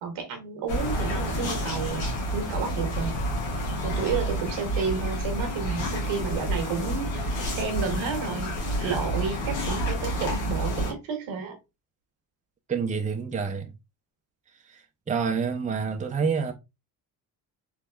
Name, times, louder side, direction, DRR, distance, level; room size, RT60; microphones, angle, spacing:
voice 1, 0.0-3.2 3.8-11.6, right 5 dB, 75° right, 1.3 m, -31 dB
sound 1, 0.7-10.9, equal, 85° left, 1.4 m, -29 dB
voice 2, 12.7-13.7 14.6-16.5, right 5 dB, 15° right, 0.6 m, -28 dB
3.5 x 2.9 x 2.2 m
supercardioid pair, 60°, 47 cm